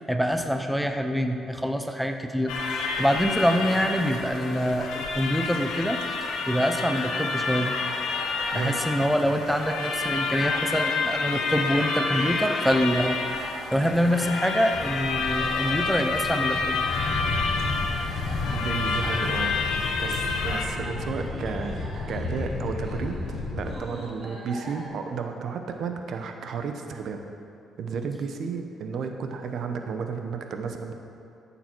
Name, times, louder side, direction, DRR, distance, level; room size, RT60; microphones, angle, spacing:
voice 1, 0.1-6.0 6.5-7.7 8.5-13.2 13.7-16.8, equal, ahead, 5 dB, 0.8 m, -25 dB
sound 1, 2.5-20.7, left 4 dB, 90° left, 1.1 m, -29 dB
sound 2, 7.9-24.9, right 1 dB, 40° right, 2.6 m, -44 dB
sound 3, 14.7-23.7, left 3 dB, 55° left, 1.4 m, -33 dB
voice 2, 18.5-19.6 20.0-27.2 27.8-30.9, right 5 dB, 70° right, 5 dB, 0.9 m, -33 dB
14.0 x 7.1 x 4.5 m, 2.5 s
cardioid pair, 90°, 0 cm